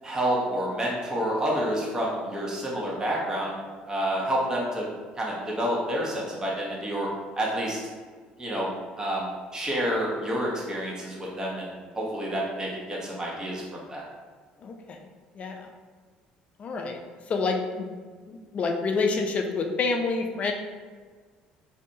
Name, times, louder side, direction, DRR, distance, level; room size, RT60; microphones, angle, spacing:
voice 1, 0.0-4.9 5.2-7.1 7.4-7.8 8.4-8.7 9.0-13.6 13.9-14.0, equal, 20° right, -4 dB, 1.0 m, -29 dB
voice 2, 14.6-15.0 15.3-15.7 16.6-17.0 17.3-17.9 18.3-20.5, left 4 dB, 45° left, 3 dB, 0.4 m, -28 dB
3.3 x 2.7 x 2.7 m, 1.5 s
supercardioid pair, 85°, 3 cm